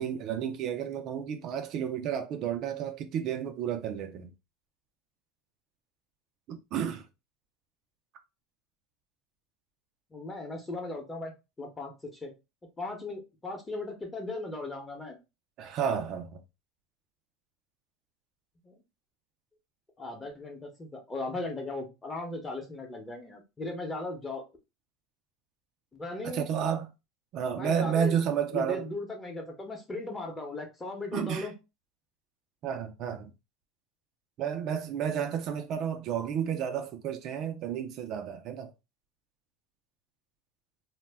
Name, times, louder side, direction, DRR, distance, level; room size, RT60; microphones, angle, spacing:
voice 1, 0.0-4.3 6.5-7.1 15.6-16.4 26.2-26.9 27.3-28.9 31.1-31.5 32.6-33.3 34.4-38.7, right 8 dB, 50° right, 0.4 m, -31 dB
voice 2, 10.1-11.3 11.6-12.3 12.8-15.2 18.6-18.8 20.0-24.4 25.9-26.5 27.5-28.1 28.5-31.6, left 2 dB, 15° left, 0.8 m, -37 dB
2.1 x 2.1 x 3.4 m
supercardioid pair, 120°, 0 cm